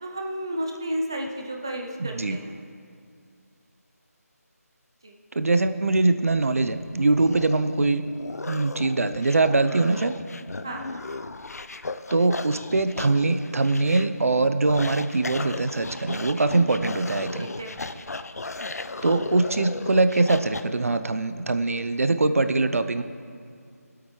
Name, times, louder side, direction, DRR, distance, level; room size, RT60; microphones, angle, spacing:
voice 1, 0.0-2.6 5.0-5.2 10.6-11.0 16.5-16.7 17.4-18.0, right 1 dB, 15° right, 2 dB, 0.5 m, -33 dB
voice 2, 2.0-2.4 5.3-8.0 8.5-10.1 12.1-17.5 19.0-23.0, right 3 dB, 60° right, 10 dB, 0.6 m, -22 dB
sound 1, 6.3-20.6, left 3 dB, 70° left, 0.6 m, -36 dB
22.0 x 8.5 x 3.2 m, 2.3 s
figure-of-eight pair, 175°, 9 cm